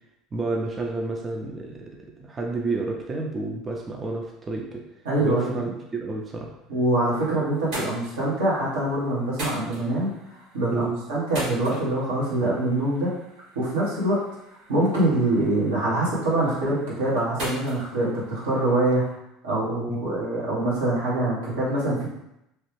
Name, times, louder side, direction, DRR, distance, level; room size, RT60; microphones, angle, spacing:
voice 1, 0.3-1.9 2.2-4.9 5.2-6.5 10.7-11.0 19.9-20.1, right 3 dB, 30° right, 0 dB, 0.5 m, -30 dB
voice 2, 5.0-5.6 6.7-10.1 10.5-13.1 13.5-14.2 14.7-19.0 19.4-22.1, right 1 dB, 85° right, -7 dB, 1.2 m, -24 dB
sound 1, 6.6-7.2 7.5-19.1, right 1 dB, 65° right, 1.5 m, -41 dB
3.1 x 2.3 x 3.1 m, 0.85 s
hypercardioid pair, 75°, 0 cm